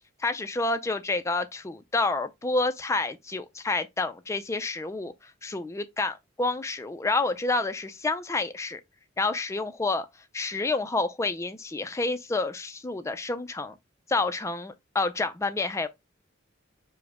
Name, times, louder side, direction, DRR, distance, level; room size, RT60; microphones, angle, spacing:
voice 1, 0.2-5.1 5.4-8.8 9.2-10.1 10.3-13.7 14.1-15.9, left 3 dB, 15° left, 0.4 m, -29 dB
4.9 x 2.1 x 4.8 m
head